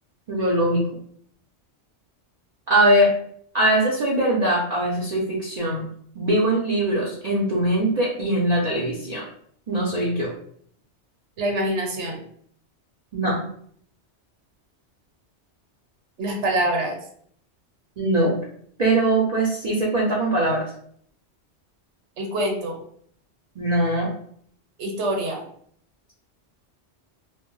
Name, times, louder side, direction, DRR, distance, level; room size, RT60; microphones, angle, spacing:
voice 1, 0.3-0.8 2.7-3.1 3.5-5.8 6.2-9.2 9.7-10.3 13.1-13.4 18.0-18.3 18.8-20.7 23.6-24.1, right 1 dB, 50° right, -4 dB, 0.5 m, -21 dB
voice 2, 11.4-12.2 16.2-17.0 22.2-22.8 24.8-25.4, right 1 dB, 80° right, 1 dB, 1.0 m, -25 dB
2.1 x 2.0 x 3.6 m, 0.63 s
omnidirectional pair, 1.2 m